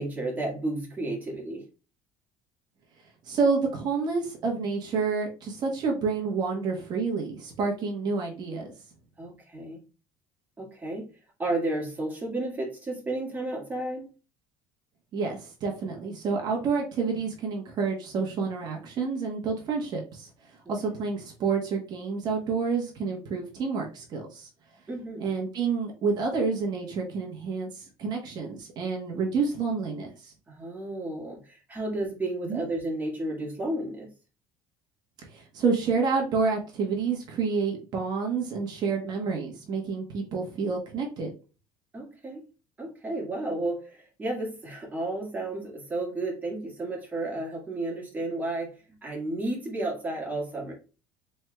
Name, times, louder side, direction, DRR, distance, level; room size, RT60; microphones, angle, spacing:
voice 1, 0.0-1.7 9.2-9.8 10.6-11.1 11.4-14.1 24.9-25.3 30.5-34.1 41.9-42.4 42.8-50.7, right 2 dB, 20° right, 1.8 m, -32 dB
voice 2, 3.2-8.7 15.1-20.3 20.7-24.5 25.2-30.3 32.4-32.6 35.3-41.3, right 4 dB, 50° right, 1.1 m, -29 dB
4.4 x 3.4 x 2.3 m
cardioid pair, 125°, 9 cm